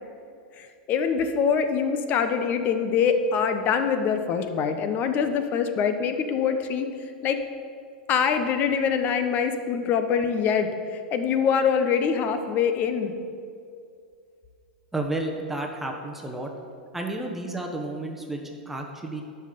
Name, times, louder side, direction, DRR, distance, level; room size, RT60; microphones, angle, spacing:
voice 1, 0.6-6.9 7.2-7.4 8.1-13.1, left 6 dB, 40° left, 8 dB, 0.9 m, -24 dB
voice 2, 14.9-16.5 16.9-19.2, right 2 dB, 5° right, 1 dB, 1.2 m, -31 dB
11.0 x 5.7 x 6.8 m, 2.3 s
hypercardioid pair, 95°, 5 cm